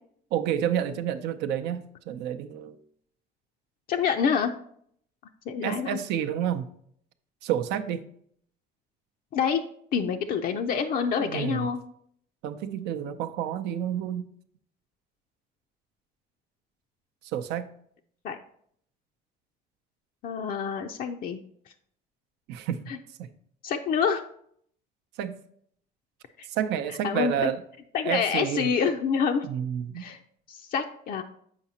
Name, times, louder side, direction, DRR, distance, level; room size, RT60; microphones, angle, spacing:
voice 1, 0.3-2.8 5.6-6.7 7.4-8.0 11.2-11.7 12.4-14.3 17.3-17.7 22.5-22.9 23.2-23.3 25.2-25.3 26.5-27.6 28.0-28.7 29.4-30.0, right 9 dB, 85° right, 10 dB, 0.5 m, -29 dB
voice 2, 3.9-4.5 5.5-6.0 9.3-9.6 9.9-11.8 18.2-18.4 20.2-21.4 22.9-23.0 23.6-24.2 26.4-26.5 27.0-27.5 27.9-29.5 30.0-30.2 30.5-31.2, left 6 dB, 60° left, 4 dB, 0.4 m, -27 dB
7.3 x 4.8 x 2.8 m, 0.66 s
cardioid pair, 110°, 17 cm